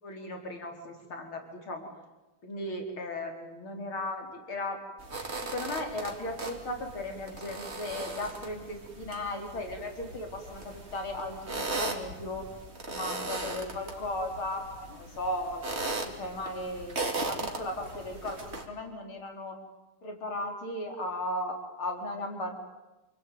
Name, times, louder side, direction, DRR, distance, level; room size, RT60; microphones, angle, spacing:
voice 1, 0.0-1.9 2.4-4.8 5.5-12.4 12.9-19.5 20.0-22.5, left 1 dB, 70° left, 3 dB, 5.0 m, -36 dB
sound 1, 5.0-18.7, right 2 dB, 30° right, 3.2 m, -38 dB
28.0 x 22.5 x 9.4 m, 1.1 s
omnidirectional pair, 2.4 m